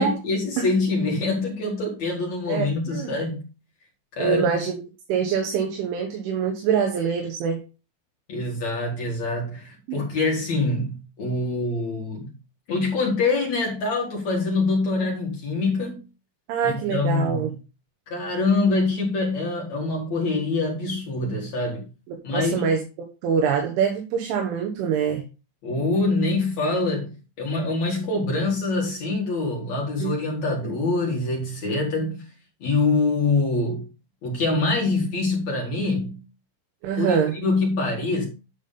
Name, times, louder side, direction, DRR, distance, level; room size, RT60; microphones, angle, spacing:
voice 1, 0.0-3.5 4.1-4.6 8.3-12.3 12.7-16.0 16.6-17.5 18.1-21.8 22.2-22.7 25.6-32.2 32.6-33.9 34.2-36.2 37.0-38.3, left 3 dB, 55° left, 2.0 m, -25 dB
voice 2, 2.5-3.1 4.2-4.8 5.1-7.6 9.9-10.1 16.5-17.5 22.1-22.8 23.2-25.2 30.0-30.1 36.8-37.3, right 7 dB, 75° right, 3.6 m, -24 dB
10.5 x 6.1 x 3.8 m
omnidirectional pair, 5.8 m